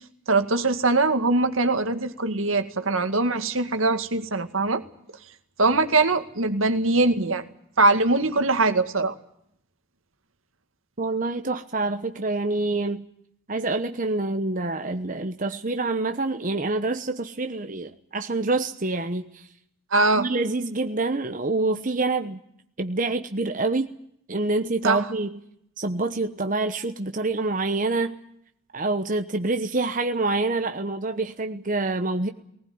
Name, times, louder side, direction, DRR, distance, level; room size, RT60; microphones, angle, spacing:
voice 1, 0.3-4.8 5.6-7.4 7.8-9.1 19.9-20.3 24.8-25.1, right 3 dB, 80° right, 8 dB, 2.1 m, -22 dB
voice 2, 11.0-13.1 13.5-19.5 20.2-22.4 22.8-23.9 24.3-25.4 25.8-28.2 28.7-32.3, right 2 dB, 40° right, 6 dB, 1.1 m, -26 dB
20.0 x 19.5 x 9.5 m, 0.71 s
head